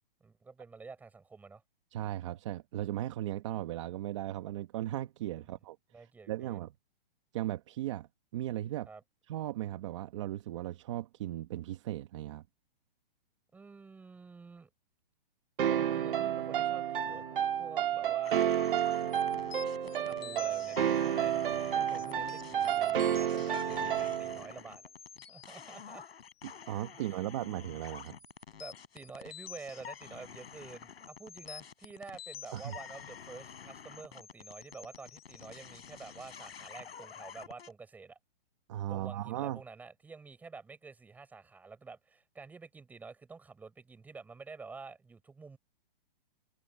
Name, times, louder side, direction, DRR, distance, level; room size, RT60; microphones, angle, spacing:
voice 1, 0.2-1.6 5.9-6.6 8.9-9.0 13.5-14.7 15.6-18.5 19.8-24.8 25.3-26.0 28.5-38.2 38.9-45.6, right 4 dB, 5° right, 5.8 m, -49 dB
voice 2, 1.9-6.7 7.3-8.9 9.3-12.4 26.4-28.1 32.5-32.7 38.7-39.6, right 13 dB, 30° right, 1.3 m, -37 dB
sound 1, 15.6-24.5, right 10 dB, 60° right, 1.9 m, -30 dB
sound 2, 18.2-37.7, left 7 dB, 85° left, 7.3 m, -48 dB
hypercardioid pair, 175°, 30 cm